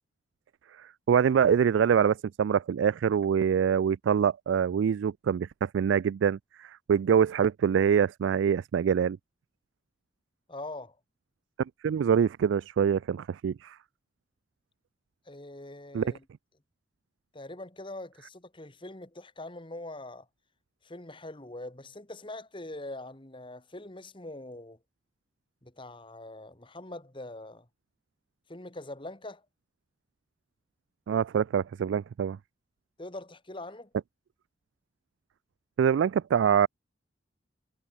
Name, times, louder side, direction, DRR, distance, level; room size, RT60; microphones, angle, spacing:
voice 1, 0.8-9.2 11.8-13.8 15.9-16.1 31.1-32.4 35.8-36.7, right 7 dB, 85° right, 0.3 m, -25 dB
voice 2, 10.5-11.0 15.3-16.2 17.3-20.3 20.8-24.8 25.6-27.7 28.5-29.4 33.0-33.9, left 2 dB, 25° left, 2.2 m, -43 dB
head